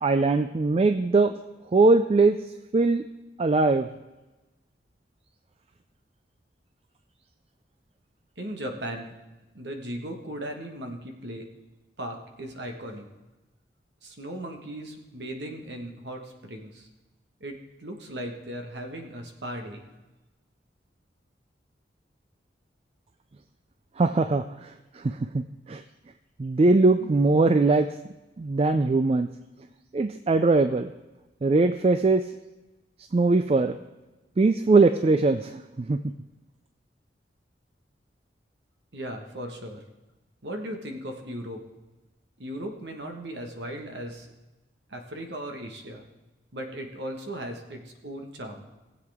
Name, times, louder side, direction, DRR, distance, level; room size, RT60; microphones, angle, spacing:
voice 1, 0.0-1.4 1.7-2.4 2.7-3.1 3.4-3.9 24.0-25.8 26.4-27.9 28.4-29.3 29.9-30.9 31.4-32.3 33.1-33.8 34.4-36.0, right 3 dB, 35° right, 10 dB, 0.3 m, -21 dB
voice 2, 8.4-9.1 9.5-11.5 12.0-13.1 14.0-16.9 17.4-19.8 38.9-39.8 40.4-41.6 42.4-44.3 44.9-46.0 46.5-48.7, right 1 dB, 75° right, 4 dB, 1.5 m, -37 dB
19.5 x 7.8 x 3.6 m, 1.1 s
head